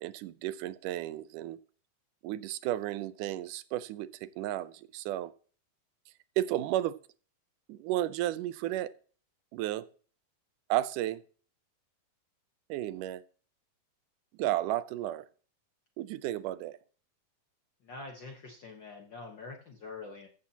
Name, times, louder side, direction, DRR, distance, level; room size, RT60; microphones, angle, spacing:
voice 1, 0.0-1.6 2.2-5.3 6.4-7.0 7.7-8.9 9.5-9.9 10.7-11.2 12.7-13.2 14.4-15.3 16.0-16.8, right 14 dB, 75° right, 15 dB, 2.0 m, -33 dB
voice 2, 17.8-20.3, left 3 dB, 70° left, 2 dB, 1.1 m, -45 dB
15.0 x 13.5 x 2.9 m, 0.42 s
omnidirectional pair, 4.1 m